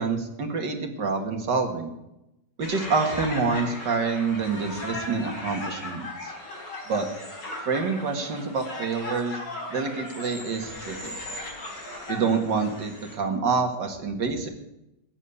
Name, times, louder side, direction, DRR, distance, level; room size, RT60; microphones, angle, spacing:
voice 1, 0.0-1.9 2.6-6.3 6.9-7.1 7.7-9.4 9.7-11.1 12.1-14.5, right 4 dB, 85° right, 4 dB, 2.5 m, -27 dB
sound 1, 2.6-13.2, left 2 dB, 90° left, 5.0 m, -37 dB
15.5 x 9.9 x 8.4 m, 0.88 s
omnidirectional pair, 1.9 m